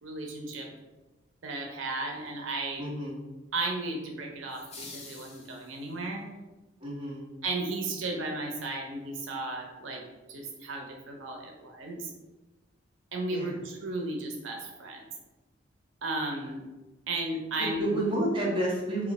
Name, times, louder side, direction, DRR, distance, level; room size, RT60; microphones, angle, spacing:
voice 1, 0.0-0.7 1.4-2.9 3.5-6.2 7.4-10.0 10.3-12.1 13.1-15.1 16.0-16.6 17.1-17.9, right 2 dB, 85° right, 1 dB, 0.5 m, -34 dB
voice 2, 2.8-3.2 6.8-7.3 13.3-13.5 17.8-19.1, right 1 dB, 25° right, -5 dB, 0.8 m, -30 dB
sound 1, 4.5-6.1, left 3 dB, 35° left, 0.6 m, -47 dB
3.0 x 2.3 x 4.0 m, 1.1 s
head